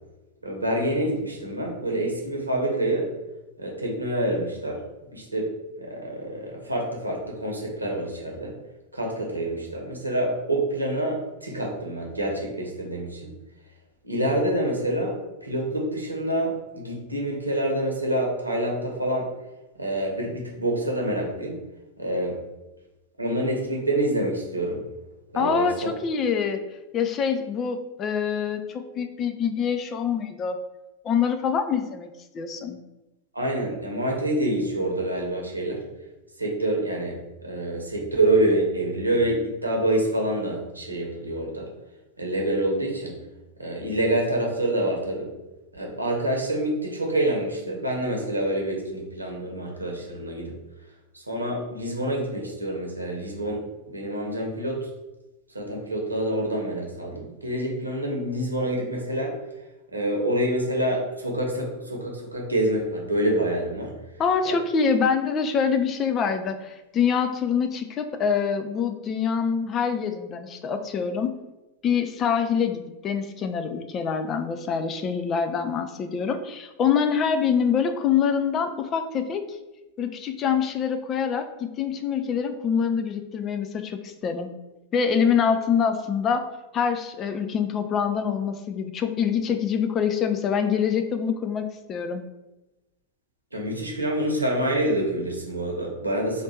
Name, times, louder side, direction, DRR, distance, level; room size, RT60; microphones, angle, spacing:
voice 1, 0.4-3.1 3.6-4.8 5.1-8.5 8.9-13.3 14.0-19.3 19.8-21.6 22.0-22.4 23.2-24.8 25.3-25.9 33.3-35.8 36.4-41.7 42.2-43.1 43.6-45.3 45.7-50.5 51.1-54.9 55.5-59.3 59.9-63.9 64.4-64.6 93.5-96.4, right 1 dB, 85° right, -1 dB, 0.9 m, -27 dB
voice 2, 25.3-26.6 26.9-30.6 31.0-32.1 32.3-32.8 64.2-71.3 71.8-79.4 80.0-84.5 84.9-86.5 86.7-92.2, left 6 dB, 30° left, 7 dB, 0.4 m, -25 dB
3.3 x 2.6 x 4.2 m, 1.0 s
figure-of-eight pair, 90°, 0 cm